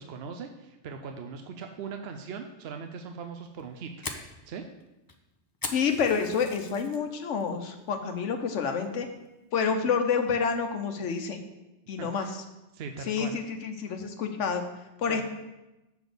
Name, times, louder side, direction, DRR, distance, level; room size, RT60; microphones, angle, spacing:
voice 1, 0.0-3.9 4.5-4.7 12.0-12.3 12.7-13.4 15.1-15.2, right 5 dB, 65° right, 5 dB, 0.8 m, -40 dB
Fire, 3.4-7.0 7.4-7.8 8.2-8.3 8.8-9.2, left 3 dB, 25° left, 0.5 m, -40 dB
voice 2, 5.7-9.1 9.5-11.4 11.9-12.4 13.1-14.6 15.0-15.2, left 6 dB, 85° left, 6 dB, 1.2 m, -28 dB
7.0 x 4.1 x 6.6 m, 0.99 s
omnidirectional pair, 1.2 m